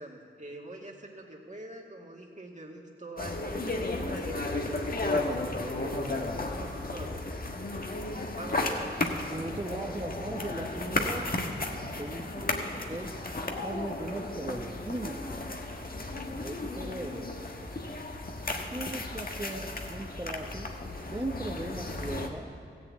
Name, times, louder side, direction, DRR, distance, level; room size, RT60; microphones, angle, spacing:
voice 1, 0.0-7.2 7.5-7.9 8.3-9.0, right 1 dB, 40° right, 0 dB, 2.2 m, -44 dB
sound 1, 3.2-22.3, left 2 dB, 50° left, 1.4 m, -34 dB
voice 2, 9.3-11.3 12.0-13.1 13.6-15.2 16.4-17.3 18.7-20.7 21.0-22.5, right 1 dB, 20° right, -1 dB, 1.1 m, -38 dB
14.5 x 7.1 x 8.3 m, 2.5 s
cardioid pair, 40°, 19 cm